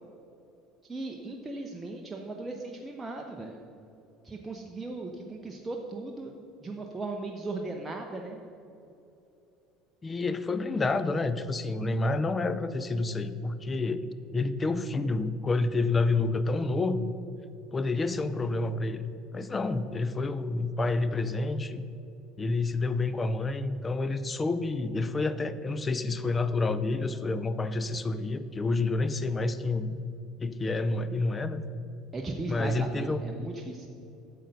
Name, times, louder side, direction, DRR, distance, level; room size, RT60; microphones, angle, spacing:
voice 1, 0.9-3.6 4.2-6.3 6.6-8.4 32.1-33.9, right 2 dB, 15° right, 1 dB, 0.7 m, -37 dB
voice 2, 10.0-17.1 17.7-21.8 22.4-30.0 30.4-31.6 32.5-33.2, left 3 dB, 20° left, 12 dB, 0.5 m, -29 dB
8.8 x 6.7 x 5.4 m, 2.8 s
figure-of-eight pair, 65°, 0 cm